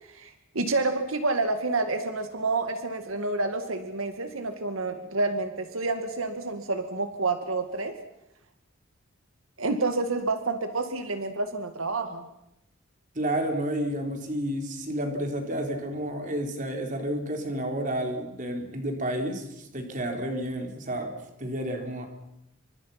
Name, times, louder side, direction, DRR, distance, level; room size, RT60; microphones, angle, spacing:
voice 1, 0.1-7.9 9.6-12.3, right 3 dB, 85° right, 7 dB, 2.1 m, -29 dB
voice 2, 13.1-22.1, right 1 dB, 40° right, 3 dB, 4.4 m, -31 dB
28.0 x 25.0 x 5.9 m, 0.83 s
head